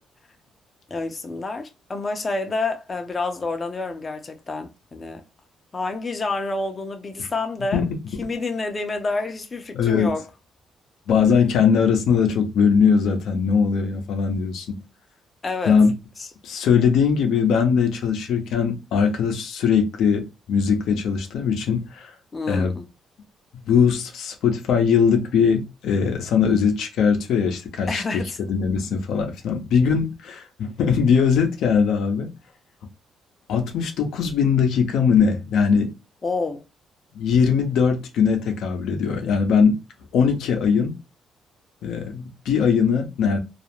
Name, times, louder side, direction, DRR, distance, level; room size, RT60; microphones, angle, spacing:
voice 1, 0.9-5.2 5.7-7.9 8.2-10.2 15.4-15.8 16.2-16.3 22.3-22.8 27.9-28.4 36.2-36.6, left 3 dB, 30° left, 0.5 m, -28 dB
voice 2, 9.7-10.1 11.1-14.8 15.7-15.9 16.4-22.1 22.5-22.7 23.7-28.2 28.5-32.3 33.5-35.9 37.1-39.8 40.1-40.9 41.8-43.4, left 6 dB, 80° left, 0.5 m, -20 dB
2.3 x 2.0 x 2.9 m
cardioid pair, 90°, 0 cm